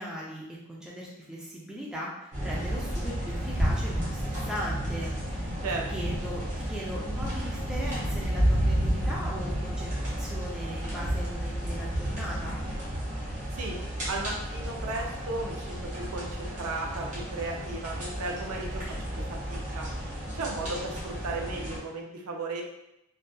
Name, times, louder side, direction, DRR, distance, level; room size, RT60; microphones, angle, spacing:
voice 1, 0.0-5.5 5.9-12.6, equal, 5° right, -5 dB, 0.4 m, -39 dB
sound 1, 2.3-21.8, equal, 30° right, 0.8 m, -31 dB
voice 2, 14.1-18.8 19.2-19.9 20.3-22.6, right 3 dB, 85° right, 0 dB, 0.5 m, -35 dB
2.6 x 2.3 x 2.2 m, 0.85 s
head